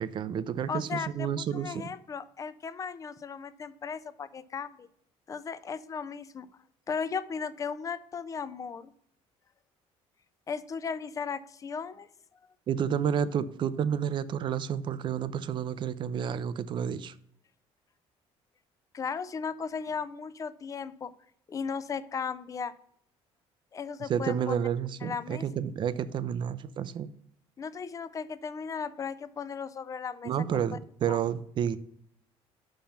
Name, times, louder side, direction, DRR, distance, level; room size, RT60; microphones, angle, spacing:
voice 1, 0.0-1.9 12.7-17.1 24.0-27.1 30.2-31.8, right 8 dB, 45° right, 16 dB, 0.5 m, -30 dB
voice 2, 0.7-4.9 5.3-6.5 6.9-8.9 10.5-12.1 18.9-21.1 21.5-22.7 23.7-24.5 25.0-25.4 27.6-30.3 30.7-30.8 31.1-31.2, left 6 dB, 30° left, 15 dB, 0.4 m, -36 dB
5.7 x 5.4 x 5.7 m, 0.70 s
cardioid pair, 130°, 11 cm